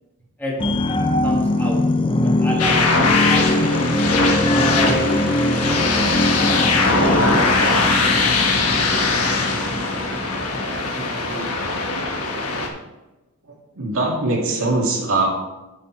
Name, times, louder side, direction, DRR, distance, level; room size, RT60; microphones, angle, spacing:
sound 1, 0.6-11.6 12.0-12.1, left 1 dB, 25° left, 0.6 m, -22 dB
voice 1, 1.2-1.8 2.2-3.8 4.4-7.3 7.7-8.6 8.9-10.3 10.9-11.8, equal, 10° left, -4 dB, 1.8 m, -32 dB
sound 2, 2.6-12.7, left 3 dB, 75° left, 1.4 m, -21 dB
voice 2, 13.8-15.3, right 2 dB, 65° right, -1 dB, 2.3 m, -21 dB
9.2 x 7.2 x 4.5 m, 1.1 s
head